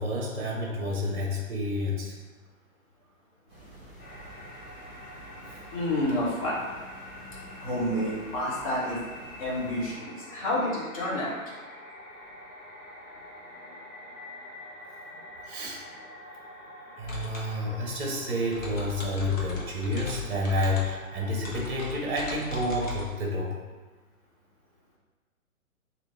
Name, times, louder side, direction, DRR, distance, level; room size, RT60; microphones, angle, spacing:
voice 1, 0.0-2.1 5.5-5.6 15.5-15.8 17.0-23.6, left 1 dB, 45° right, -1 dB, 0.7 m, -30 dB
sound 1, 3.5-10.0, right 1 dB, 10° right, 1.1 m, -49 dB
sound 2, 4.0-22.8, left 1 dB, 90° left, 1.3 m, -46 dB
voice 2, 5.7-11.4 13.7-13.8, left 1 dB, 25° left, -6 dB, 0.6 m, -30 dB
sound 3, 17.0-23.0, left 3 dB, 65° left, 1.0 m, -38 dB
2.9 x 2.5 x 3.4 m, 1.3 s
figure-of-eight pair, 130°, 43 cm